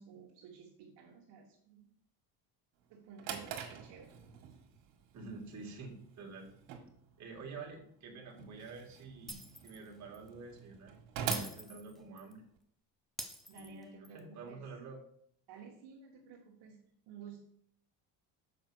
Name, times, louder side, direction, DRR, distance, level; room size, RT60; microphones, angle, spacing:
voice 1, 0.0-1.9 2.9-4.1 13.5-14.6 15.5-17.4, right 6 dB, 60° right, -2 dB, 1.4 m, -54 dB
Drawer open or close, 2.8-12.6, right 7 dB, 85° right, 1.6 m, -45 dB
voice 2, 5.1-6.5 7.2-10.9 11.3-12.4 13.5-15.0, right 4 dB, 40° right, 0 dB, 2.0 m, -48 dB
Shatter, 9.3-9.8 10.1-10.3 11.3-12.3 13.2-14.2, equal, ahead, 0.3 m, -44 dB
6.6 x 4.6 x 6.2 m, 0.65 s
cardioid pair, 155°, 43 cm